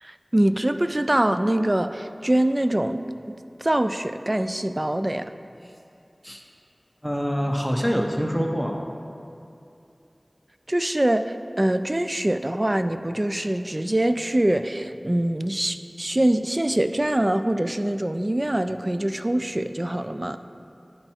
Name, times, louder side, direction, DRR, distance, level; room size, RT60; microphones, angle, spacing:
voice 1, 0.0-5.3 10.7-20.4, right 1 dB, 35° right, 10 dB, 0.3 m, -24 dB
voice 2, 7.0-8.8, equal, 5° left, 0 dB, 1.0 m, -25 dB
11.0 x 4.4 x 4.4 m, 2.7 s
wide cardioid pair, 50°, 0 cm